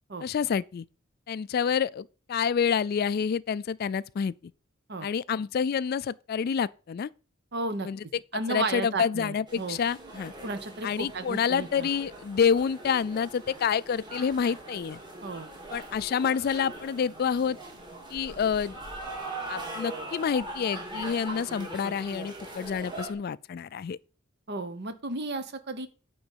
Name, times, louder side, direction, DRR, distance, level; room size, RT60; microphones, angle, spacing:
voice 1, 0.2-0.9 1.3-4.5 5.0-7.1 7.8-8.2 8.5-10.3 10.8-15.0 15.7-17.6 18.1-18.8 19.5-24.0, left 7 dB, 50° left, 0.3 m, -28 dB
voice 2, 7.5-7.9 8.3-9.8 10.4-11.9 15.2-15.5 24.5-25.9, right 2 dB, 55° right, 1.1 m, -33 dB
sound 1, 9.5-23.1, right 2 dB, 25° right, 2.2 m, -41 dB
9.6 x 3.9 x 7.2 m
head